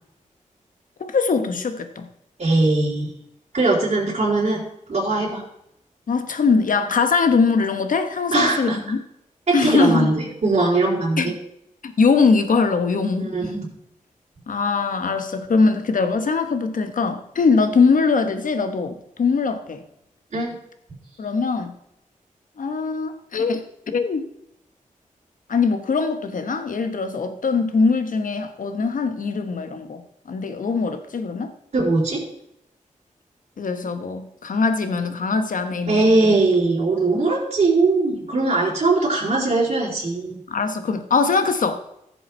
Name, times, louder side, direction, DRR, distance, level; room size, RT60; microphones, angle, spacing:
voice 1, 1.0-2.1 6.1-9.0 9.5-10.1 11.2-11.3 11.8-13.3 14.5-19.8 21.2-21.7 22.6-24.3 25.5-30.0 30.3-31.5 33.6-36.3 40.5-41.8, left 4 dB, 75° left, 8 dB, 1.1 m, -21 dB
voice 2, 2.4-3.1 3.5-4.6 4.9-5.4 8.3-8.8 9.5-11.3 13.1-13.6 20.3-20.6 31.7-32.2 35.9-40.4, right 3 dB, 55° right, -8 dB, 4.0 m, -20 dB
15.0 x 7.2 x 4.3 m, 0.78 s
wide cardioid pair, 80°, 14 cm